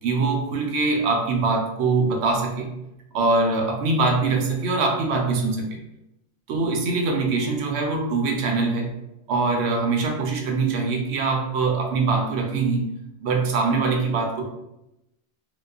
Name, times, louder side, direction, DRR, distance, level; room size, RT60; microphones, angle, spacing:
voice 1, 0.0-2.7 3.1-5.8 6.5-8.9 9.3-12.8 13.2-14.4, right 3 dB, 75° right, 2 dB, 0.8 m, -23 dB
2.9 x 2.0 x 2.3 m, 0.89 s
omnidirectional pair, 1.2 m